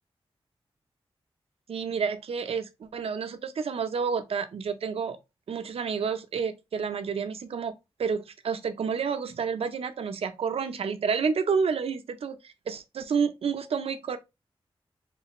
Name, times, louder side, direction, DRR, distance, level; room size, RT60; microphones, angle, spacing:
voice 1, 1.7-5.2 5.5-7.7 8.0-12.4 12.7-14.2, right 6 dB, 90° right, 0.6 m, -29 dB
3.8 x 3.2 x 2.9 m
wide cardioid pair, 85°, 10 cm